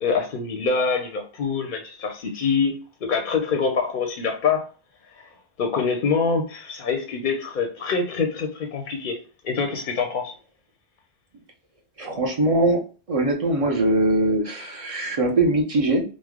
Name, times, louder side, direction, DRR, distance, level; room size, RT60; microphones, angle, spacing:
voice 1, 0.0-2.7 3.0-4.7 5.6-10.3, left 5 dB, 60° left, 0.6 m, -25 dB
voice 2, 12.0-12.8 13.1-16.0, right 2 dB, 40° right, 0.5 m, -21 dB
3.1 x 2.0 x 3.4 m
omnidirectional pair, 1.1 m